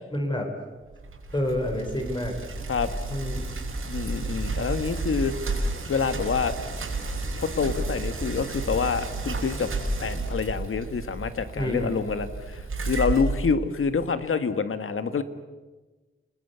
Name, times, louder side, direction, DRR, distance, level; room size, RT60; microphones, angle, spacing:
voice 1, 0.1-0.5 1.3-2.3 3.1-3.4 11.6-12.0, left 1 dB, 20° left, 3 dB, 4.3 m, -28 dB
Bicycle, 0.9-14.1, right 2 dB, 85° right, 5.5 m, -32 dB
voice 2, 3.9-5.6 5.9-6.5 7.4-9.7 10.0-15.2, left 5 dB, 85° left, 10 dB, 1.6 m, -27 dB
29.5 x 20.5 x 8.1 m, 1.3 s
wide cardioid pair, 130°, 21 cm